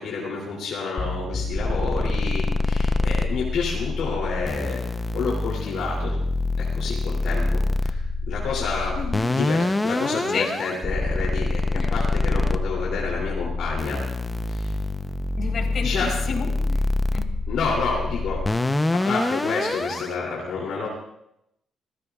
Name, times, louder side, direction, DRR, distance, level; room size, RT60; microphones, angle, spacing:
voice 1, 0.0-4.8 5.1-6.2 6.6-9.0 9.3-14.0 14.5-14.7 15.8-16.1 17.5-18.4 18.9-20.9, left 4 dB, 75° left, -3 dB, 3.0 m, -29 dB
sound 1, 1.0-3.1, left 2 dB, 35° left, 6.2 m, -34 dB
sound 2, 1.6-20.1, left 2 dB, 15° left, 0.7 m, -25 dB
voice 2, 8.9-9.3 10.3-10.5 11.7-11.9 15.4-16.8 17.1-17.3 19.0-19.1, left 5 dB, 60° left, 1 dB, 3.9 m, -31 dB
25.5 x 15.5 x 2.4 m, 0.81 s
cardioid pair, 90°, 0 cm